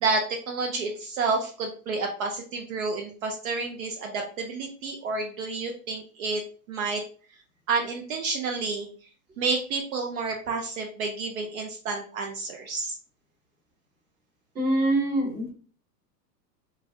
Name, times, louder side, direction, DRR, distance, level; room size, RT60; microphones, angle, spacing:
voice 1, 0.0-6.4 6.7-7.0 7.7-8.9 9.4-13.0, right 4 dB, 55° right, 2 dB, 0.6 m, -30 dB
voice 2, 14.6-15.5, right 1 dB, 20° right, 0 dB, 1.0 m, -24 dB
3.3 x 2.2 x 2.6 m, 0.41 s
hypercardioid pair, 115°, 49 cm